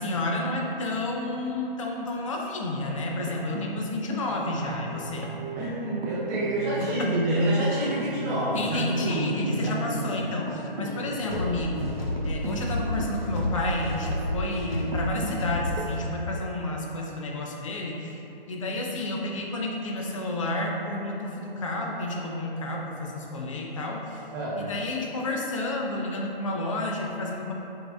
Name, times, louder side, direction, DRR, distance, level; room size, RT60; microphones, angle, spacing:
voice 1, 0.0-5.3 6.8-7.1 8.5-18.2 18.5-24.3 24.6-27.5, left 2 dB, 35° left, -1 dB, 0.5 m, -31 dB
sound 1, 2.9-16.9 18.1-18.2 18.5-18.7, right 1 dB, 85° right, 0.6 m, -37 dB
voice 2, 5.5-10.1 10.8-11.4 24.3-24.6, right 1 dB, 15° right, -8 dB, 0.6 m, -28 dB
sound 2, 11.3-16.3, left 1 dB, 75° left, 0.8 m, -31 dB
5.8 x 2.7 x 2.3 m, 2.9 s
figure-of-eight pair, 135°, 29 cm